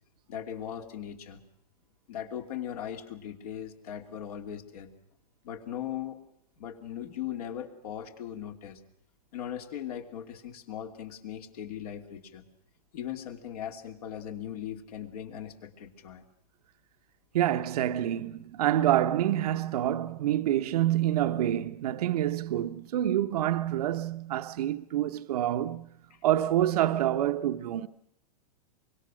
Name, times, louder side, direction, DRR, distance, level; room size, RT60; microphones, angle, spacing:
voice 1, 0.3-1.4 2.1-4.9 5.4-6.2 6.6-8.8 9.3-12.4 12.9-16.2, left 10 dB, 70° left, 3.0 m, -39 dB
voice 2, 17.3-25.9 26.2-27.9, right 12 dB, 70° right, 0.9 m, -27 dB
24.5 x 22.5 x 6.3 m
hypercardioid pair, 135°, 20 cm